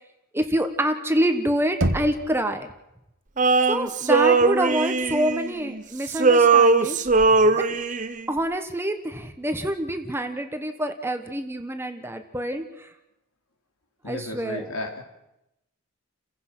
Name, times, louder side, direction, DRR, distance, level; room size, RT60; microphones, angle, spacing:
voice 1, 0.3-2.7 3.7-7.1 7.6-7.8 8.3-12.9 14.1-14.7, right 1 dB, 10° right, 7 dB, 1.2 m, -26 dB
Knock, 1.8-2.7, right 1 dB, 60° right, 1.5 m, -27 dB
Male singing, 3.4-5.8 6.1-8.2, right 4 dB, 35° right, 0.8 m, -19 dB
voice 2, 7.3-7.6 14.0-15.0, left 1 dB, 75° left, 2 dB, 3.8 m, -35 dB
30.0 x 16.0 x 6.1 m, 0.89 s
head